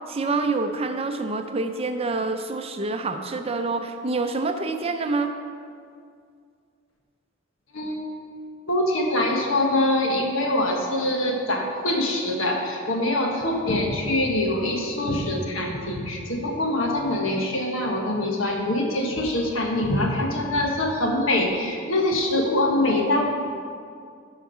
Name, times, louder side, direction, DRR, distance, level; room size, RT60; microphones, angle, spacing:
voice 1, 0.1-5.3, right 3 dB, 30° right, 6 dB, 0.5 m, -27 dB
voice 2, 7.7-8.0 8.6-23.2, left 1 dB, 75° left, 1 dB, 1.4 m, -24 dB
11.5 x 4.8 x 5.6 m, 2.3 s
head